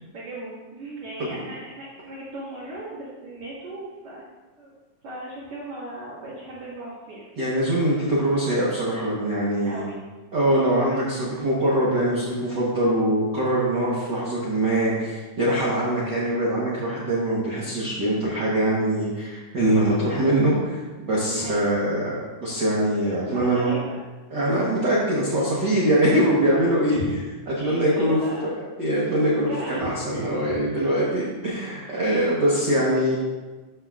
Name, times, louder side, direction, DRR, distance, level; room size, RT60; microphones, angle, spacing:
voice 1, 0.1-4.2 4.6-4.7 5.0-7.3 7.9-8.0 9.6-10.0 10.8-11.2 21.3-21.8 23.3-24.0 26.8-27.1 27.6-28.5 29.3-30.8 31.8-32.3, right 1 dB, 70° right, -10 dB, 3.2 m, -37 dB
voice 2, 7.4-9.8 10.3-23.7 24.3-27.0 27.6-33.2, right 1 dB, 55° right, -6 dB, 1.3 m, -23 dB
12.0 x 5.8 x 2.4 m, 1.3 s
omnidirectional pair, 3.4 m